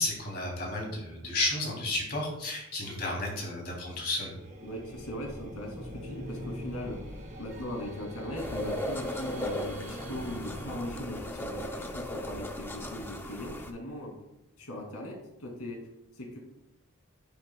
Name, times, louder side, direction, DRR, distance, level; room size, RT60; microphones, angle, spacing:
voice 1, 0.0-4.3, left 2 dB, 45° left, -1 dB, 3.2 m, -32 dB
sound 1, 4.4-11.0, equal, 35° right, 2.2 m, -43 dB
voice 2, 4.6-7.0 7.4-14.2 14.6-15.9 16.1-16.4, left 1 dB, 90° left, 0 dB, 2.8 m, -39 dB
sound 2, 8.4-13.7, left 1 dB, 10° left, 0.7 m, -37 dB
10.5 x 9.2 x 2.4 m, 0.88 s
head